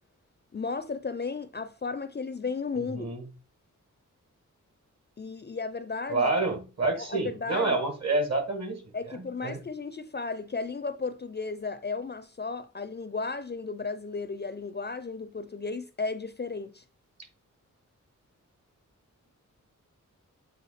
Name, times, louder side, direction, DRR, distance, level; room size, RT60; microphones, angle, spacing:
voice 1, 0.5-3.1 5.2-6.3 6.9-7.8 8.9-16.8, left 4 dB, 35° left, 0.4 m, -34 dB
voice 2, 2.8-3.2 6.1-8.8 9.2-9.6, right 2 dB, 55° right, 2.1 m, -28 dB
8.0 x 3.0 x 4.2 m
wide cardioid pair, 100°, 32 cm